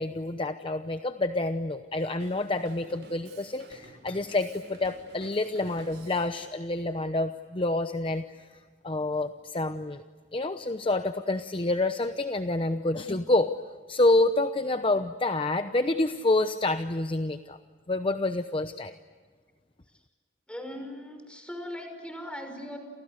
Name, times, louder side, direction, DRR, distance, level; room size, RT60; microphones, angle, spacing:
voice 1, 0.0-8.4 8.8-10.0 10.3-13.5 13.9-17.6 17.9-18.9, left 2 dB, 30° left, 9 dB, 0.9 m, -28 dB
Drum kit, 2.2-6.4, right 2 dB, 75° right, 6.6 m, -51 dB
voice 2, 20.5-22.8, left 1 dB, 5° left, 5 dB, 5.9 m, -39 dB
30.0 x 29.0 x 6.6 m, 1.5 s
head